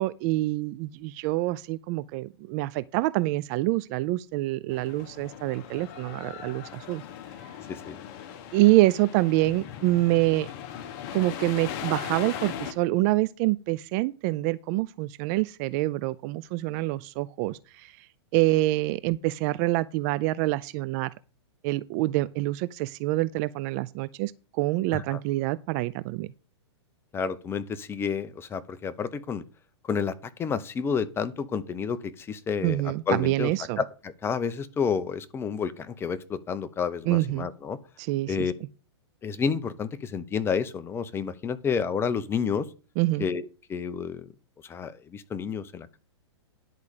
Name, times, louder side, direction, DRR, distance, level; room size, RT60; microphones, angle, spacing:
voice 1, 0.0-7.0 8.5-10.5 11.1-18.1 18.3-21.1 21.6-26.3 32.6-33.8 37.1-37.5 38.0-38.5 43.0-43.3, right 18 dB, 35° right, 0.4 m, -26 dB
sound 1, 4.7-12.7, left 9 dB, 45° left, 1.3 m, -39 dB
voice 2, 27.1-29.4 29.8-30.1 30.4-32.8 33.1-33.5 33.8-37.8 38.3-38.5 39.2-42.7 43.2-44.2 44.7-46.0, left 6 dB, 15° left, 0.7 m, -30 dB
10.5 x 4.9 x 6.5 m
hypercardioid pair, 135°, 15 cm